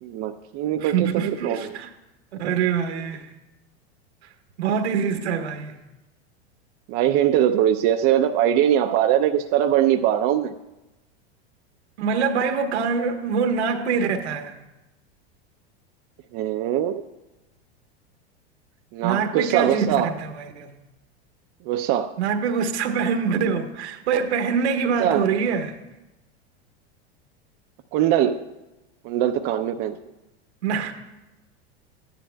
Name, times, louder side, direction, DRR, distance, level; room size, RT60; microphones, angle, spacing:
voice 1, 0.0-1.8 6.9-10.5 16.3-17.0 18.9-20.1 21.6-22.1 25.0-25.3 27.9-28.4 29.0-30.0, right 11 dB, 45° right, 0.5 m, -22 dB
voice 2, 0.8-1.9 2.4-3.3 4.6-5.8 12.0-14.6 19.0-20.7 22.2-25.8 30.6-30.9, right 6 dB, 80° right, 1.2 m, -24 dB
14.0 x 10.0 x 2.2 m
hypercardioid pair, 110°, 33 cm